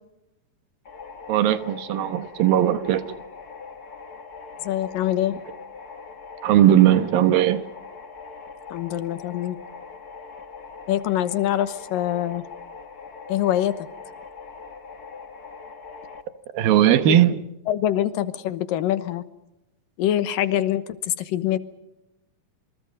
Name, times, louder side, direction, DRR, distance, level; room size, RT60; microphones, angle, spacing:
sound 1, 0.8-16.2, left 5 dB, 45° left, 1.2 m, -41 dB
voice 1, 1.3-3.2 6.4-7.7 16.5-17.4, right 11 dB, 85° right, 11 dB, 3.0 m, -18 dB
voice 2, 4.6-5.4 8.7-9.6 10.9-12.4 13.3-13.9 17.1-17.2 17.7-19.2 20.0-21.6, left 12 dB, 80° left, 13 dB, 2.7 m, -24 dB
27.5 x 26.5 x 5.3 m, 0.92 s
omnidirectional pair, 4.0 m